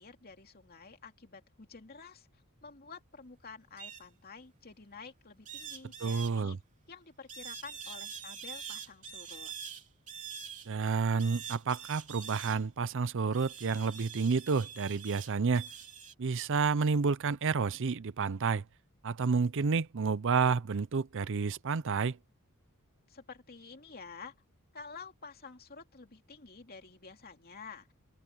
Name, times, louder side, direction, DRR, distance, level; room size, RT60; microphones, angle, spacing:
voice 1, 0.0-2.3 2.6-6.6 6.9-9.5 23.1-24.3 24.7-27.9, left 5 dB, 45° left, 2.7 m, -50 dB
sound 1, 3.8-4.0 5.4-6.3 7.3-10.7 11.2-12.6 13.3-16.1, right 7 dB, 35° right, 3.2 m, -45 dB
voice 2, 6.0-6.6 10.7-15.7 16.2-18.6 19.0-22.2, right 5 dB, 55° right, 0.6 m, -30 dB
open air
head